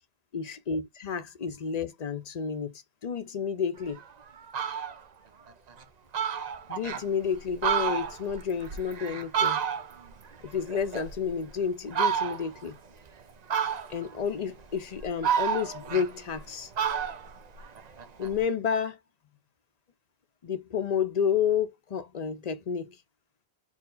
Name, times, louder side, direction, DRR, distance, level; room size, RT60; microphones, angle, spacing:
voice 1, 0.3-2.7 3.0-4.0 6.7-9.6 10.4-12.8 13.9-16.7 18.2-19.0 20.4-23.0, left 7 dB, 45° left, 0.6 m, -30 dB
Fowl, 3.9-4.0 4.4-5.0 5.5-5.6 5.8-5.9 6.1-7.0 7.5-10.1 10.4-11.5 11.9-12.6 13.5-14.1 14.7-16.5 16.8-18.3, right 8 dB, 45° right, 0.6 m, -30 dB
4.6 x 2.1 x 3.8 m
omnidirectional pair, 1.1 m